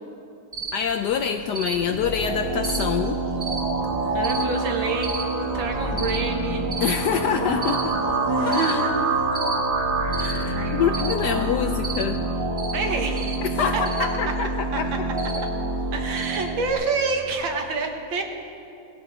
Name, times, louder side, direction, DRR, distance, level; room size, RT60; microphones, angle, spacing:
Cricket, 0.5-17.3, right 2 dB, 20° right, 1.6 m, -36 dB
voice 1, 0.7-3.2 6.8-8.0 8.5-8.8 10.2-12.2 13.6-14.5 14.8-14.9, left 7 dB, 80° left, 7 dB, 0.9 m, -25 dB
sound 1, 1.7-16.7, right 2 dB, 40° right, 2.1 m, -27 dB
voice 2, 4.1-6.7 7.1-7.5 8.3-8.9 10.5-11.5 12.7-13.4 13.7-13.8 14.3-14.4 14.7-14.8 15.9-18.2, right 4 dB, 65° right, 3 dB, 2.0 m, -28 dB
18.5 x 15.5 x 4.2 m, 2.7 s
omnidirectional pair, 2.4 m